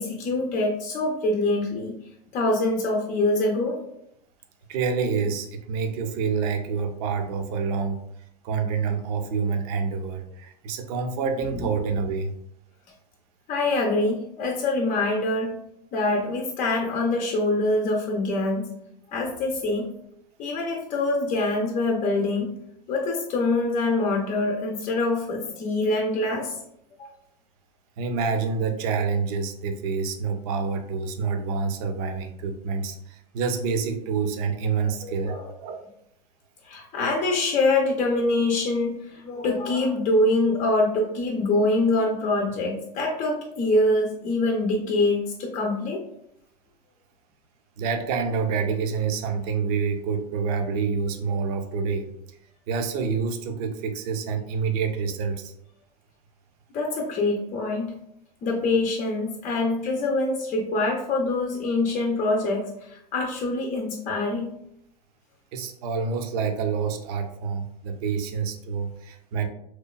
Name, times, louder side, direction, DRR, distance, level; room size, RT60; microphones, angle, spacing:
voice 1, 0.0-1.9 2.3-3.8 11.5-11.7 13.5-15.6 15.9-18.7 19.1-19.9 20.4-22.5 22.9-26.6 27.0-27.1 34.8-35.5 36.6-46.0 56.7-58.0 58.4-64.5, left 2 dB, 40° left, 0 dB, 0.5 m, -25 dB
voice 2, 4.7-8.0 8.4-12.3 28.0-35.8 47.8-52.1 52.7-55.5 65.5-69.5, right 5 dB, 65° right, 6 dB, 0.5 m, -27 dB
2.8 x 2.3 x 2.2 m, 0.75 s
hypercardioid pair, 100°, 21 cm